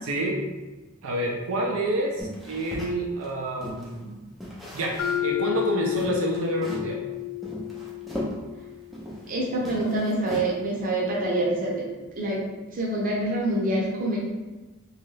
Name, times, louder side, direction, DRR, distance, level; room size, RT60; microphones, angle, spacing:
voice 1, 0.0-0.4 1.0-4.2 4.7-7.0, right 1 dB, 75° right, -2 dB, 0.4 m, -28 dB
sound 1, 2.2-4.0 4.4-5.4 5.6-5.7 6.0-6.9 7.4-9.3 9.6-10.8, equal, ahead, 0.4 m, -37 dB
Mallet percussion, 5.0-9.0, left 15 dB, 70° left, 0.3 m, -31 dB
voice 2, 9.3-11.9 12.2-12.4 12.7-14.2, right 1 dB, 40° right, -4 dB, 0.7 m, -26 dB
3.1 x 2.4 x 3.1 m, 1.2 s
head